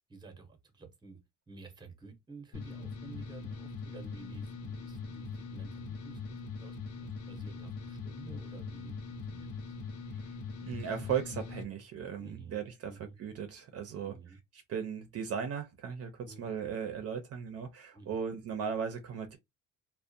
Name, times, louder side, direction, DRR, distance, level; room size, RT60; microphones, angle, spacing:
voice 1, 0.1-1.2 1.5-9.7 12.2-13.2 14.0-14.4 16.2-16.5 17.9-18.2, right 4 dB, 15° right, 0.7 m, -52 dB
sound 1, 2.5-11.6, left 4 dB, 80° left, 0.8 m, -42 dB
voice 2, 10.6-14.2 14.7-19.4, right 7 dB, 50° right, 0.5 m, -37 dB
2.4 x 2.1 x 2.5 m
cardioid pair, 110°, 31 cm